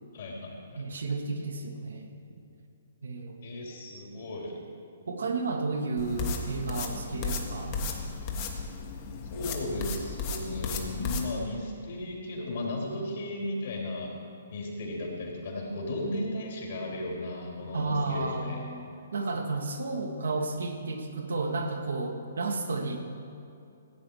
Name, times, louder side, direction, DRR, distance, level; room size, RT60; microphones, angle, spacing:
voice 1, 0.1-0.9 3.4-4.6 9.3-14.1 14.5-18.7, left 1 dB, 55° left, -2 dB, 3.5 m, -35 dB
voice 2, 0.7-2.2 3.0-3.4 5.1-7.8 17.7-23.0, right 3 dB, 70° right, 2 dB, 1.7 m, -32 dB
sound 1, 6.0-11.3, left 4 dB, 35° left, 1.5 m, -34 dB
16.0 x 8.8 x 4.9 m, 2.6 s
figure-of-eight pair, 130°, 0 cm